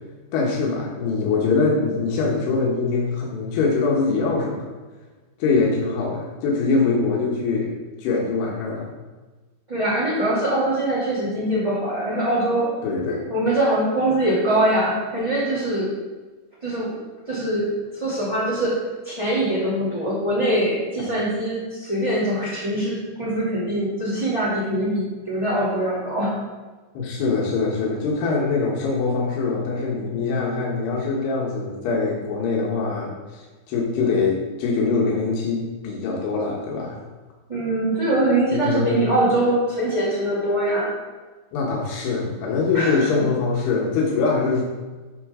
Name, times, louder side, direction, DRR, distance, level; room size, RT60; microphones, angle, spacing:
voice 1, 0.3-4.7 5.4-7.7 8.0-8.9 12.8-13.2 26.9-37.0 38.5-39.0 41.5-44.6, left 4 dB, 90° left, -2 dB, 3.3 m, -23 dB
voice 2, 9.7-12.7 13.3-15.9 16.6-16.9 17.3-18.8 19.0-26.3 37.5-40.9 42.7-43.0, right 1 dB, 10° right, -7 dB, 1.7 m, -23 dB
12.0 x 6.2 x 3.7 m, 1.3 s
omnidirectional pair, 4.5 m